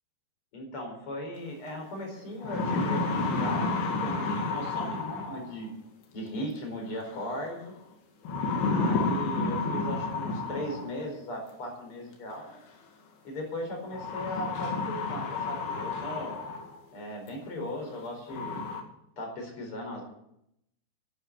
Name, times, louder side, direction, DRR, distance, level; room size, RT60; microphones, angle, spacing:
voice 1, 0.5-5.7 6.1-7.8 8.7-12.6 13.2-16.4 16.9-18.6 19.2-20.0, equal, 35° left, 2 dB, 5.2 m, -37 dB
sound 1, 1.7-1.8 2.2-5.6 7.0-7.5 8.2-11.0 12.3-12.4 13.9-16.8 17.3-17.4 17.9-18.0 18.3-18.8, left 3 dB, 75° left, 3.8 m, -31 dB
11.5 x 11.0 x 8.1 m, 0.77 s
omnidirectional pair, 4.4 m